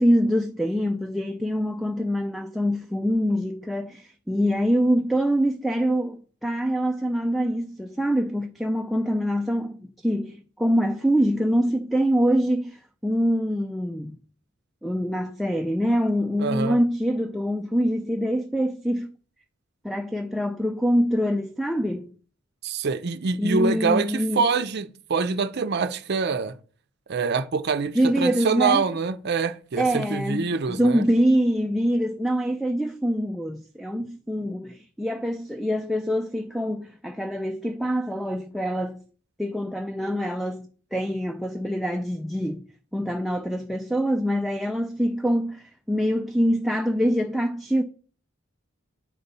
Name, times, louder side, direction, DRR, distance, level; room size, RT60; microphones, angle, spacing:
voice 1, 0.0-14.2 14.8-19.1 19.8-22.1 23.4-24.5 27.9-28.8 29.8-39.0 39.4-42.6 42.9-47.8, equal, ahead, 0.4 m, -25 dB
voice 2, 16.4-16.8 22.6-26.6 27.1-31.0, right 4 dB, 50° right, 0.5 m, -25 dB
8.6 x 4.2 x 5.3 m
head